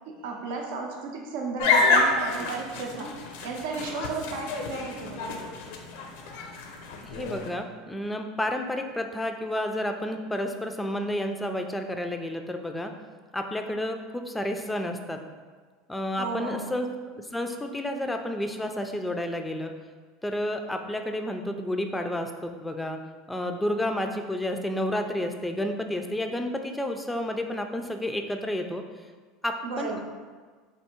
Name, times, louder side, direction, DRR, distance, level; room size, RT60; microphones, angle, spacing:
voice 1, 0.1-3.1 3.4-5.4 16.2-16.8 29.6-30.0, right 4 dB, 75° right, 1 dB, 0.6 m, -34 dB
sound 1, 1.6-7.5, left 3 dB, 75° left, 0.5 m, -28 dB
voice 2, 7.0-12.9 13.3-15.2 15.9-16.9 17.2-19.7 20.2-23.0 23.3-28.8 29.4-30.0, left 1 dB, 5° left, 5 dB, 0.4 m, -30 dB
3.5 x 2.6 x 4.3 m, 1.5 s
supercardioid pair, 120°, 0 cm